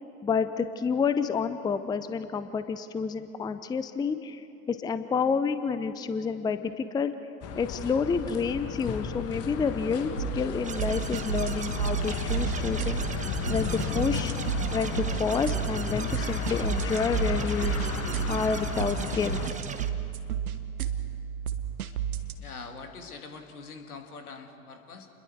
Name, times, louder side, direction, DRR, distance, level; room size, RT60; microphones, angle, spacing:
voice 1, 0.2-7.1 7.6-13.2 13.5-14.3 14.7-19.4, left 5 dB, 10° left, 12 dB, 0.6 m, -29 dB
sound 1, 7.4-19.5, left 7 dB, 35° left, 1.5 m, -33 dB
sound 2, 10.2-22.4, right 9 dB, 75° right, 1.3 m, -32 dB
sound 3, 10.6-19.9, right 6 dB, 15° right, 1.1 m, -40 dB
voice 2, 22.4-25.1, left 4 dB, 75° left, 5 dB, 2.2 m, -43 dB
29.0 x 21.5 x 4.7 m, 3.0 s
figure-of-eight pair, 85°, 44 cm